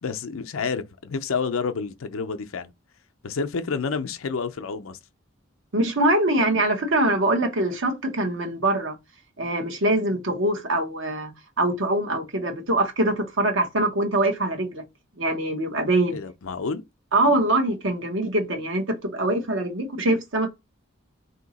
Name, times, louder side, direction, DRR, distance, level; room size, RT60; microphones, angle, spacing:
voice 1, 0.0-2.7 3.2-5.0 16.1-16.8, left 5 dB, 75° left, 0.5 m, -29 dB
voice 2, 5.7-8.9 9.4-14.8 15.2-16.2 17.1-20.5, right 1 dB, 65° right, 1.0 m, -23 dB
3.7 x 2.8 x 4.0 m
head